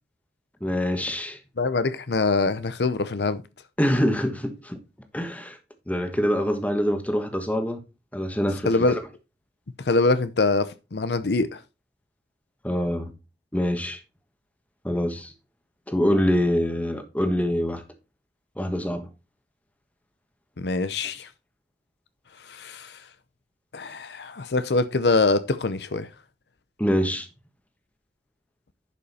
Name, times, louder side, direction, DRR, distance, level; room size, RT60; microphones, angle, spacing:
voice 1, 0.6-1.4 3.8-4.8 5.1-5.6 5.9-7.8 8.1-8.7 12.6-13.1 13.5-14.0 14.8-15.3 15.9-17.8 18.6-19.1 26.8-27.3, equal, 10° left, 1.3 m, -25 dB
voice 2, 1.6-3.4 8.6-9.0 9.8-11.6 20.6-21.3 22.5-23.0 23.7-26.1, left 3 dB, 70° left, 0.7 m, -24 dB
11.0 x 5.5 x 4.2 m
head